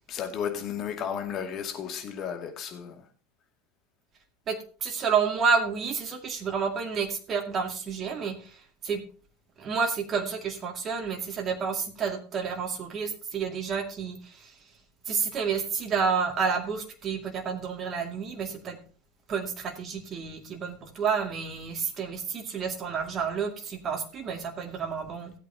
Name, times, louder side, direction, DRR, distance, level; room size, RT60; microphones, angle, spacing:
voice 1, 0.1-3.0, left 8 dB, 40° left, 2.2 m, -33 dB
voice 2, 4.5-9.0 9.6-14.5 15.1-18.8 19.3-25.3, right 6 dB, 35° right, 2.2 m, -30 dB
16.5 x 8.4 x 2.8 m
figure-of-eight pair, 80°, 0 cm